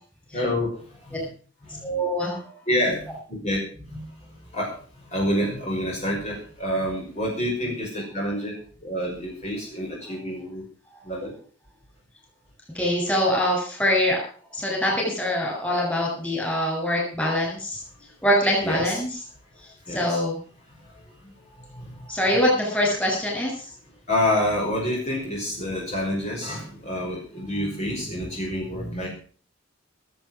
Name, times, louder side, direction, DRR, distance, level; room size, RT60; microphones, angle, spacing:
voice 1, 0.3-0.8 1.1-1.3 2.7-3.0 3.3-3.6 3.9-4.0 4.5-4.7 5.1-8.5 8.8-10.6 11.1-11.3 18.6-19.0 19.9-20.2 22.2-22.4 24.1-29.1, left 1 dB, 35° left, -3 dB, 5.9 m, -27 dB
voice 2, 1.8-2.4 12.7-14.2 14.5-17.8 18.2-19.1 19.9-20.4 21.6-21.7 22.1-23.5, equal, 5° left, -2 dB, 7.5 m, -23 dB
19.0 x 8.8 x 6.2 m, 0.43 s
head